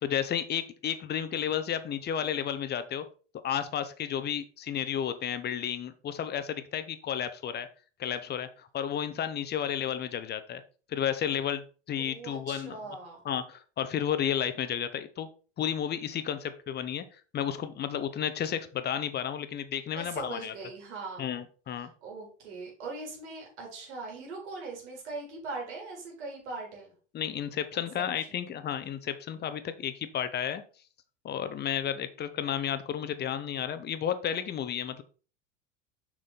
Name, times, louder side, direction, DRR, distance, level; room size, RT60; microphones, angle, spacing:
voice 1, 0.0-3.0 3.4-7.7 8.0-10.6 10.9-12.8 13.2-15.3 15.6-17.0 17.3-20.5 21.2-21.9 27.1-30.6 31.2-35.0, left 9 dB, 25° left, 12 dB, 0.9 m, -32 dB
voice 2, 12.0-13.2 19.9-21.3 22.0-26.9 27.7-28.4, right 3 dB, 65° right, -1 dB, 3.9 m, -41 dB
6.7 x 6.1 x 4.2 m, 0.38 s
figure-of-eight pair, 80°, 37 cm